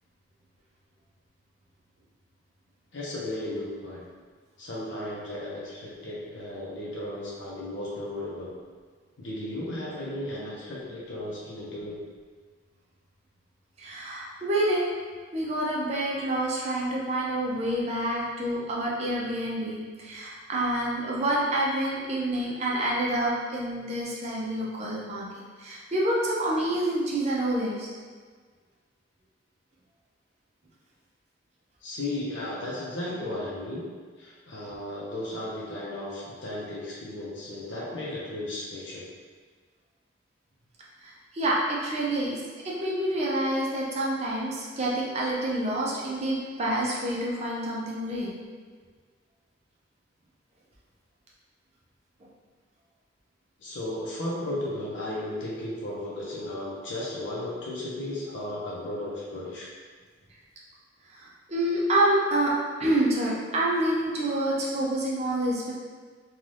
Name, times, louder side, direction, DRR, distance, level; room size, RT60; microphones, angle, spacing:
voice 1, 2.9-4.1 4.6-8.5 9.2-12.0 31.8-33.9 34.2-39.1 53.6-59.7, left 1 dB, 70° left, -6 dB, 0.6 m, -35 dB
voice 2, 13.8-14.8 15.3-25.3 25.6-27.9 41.0-42.4 42.6-48.3 61.1-62.5 62.8-65.7, right 1 dB, 35° right, -5 dB, 0.5 m, -27 dB
2.6 x 2.3 x 3.2 m, 1.5 s
head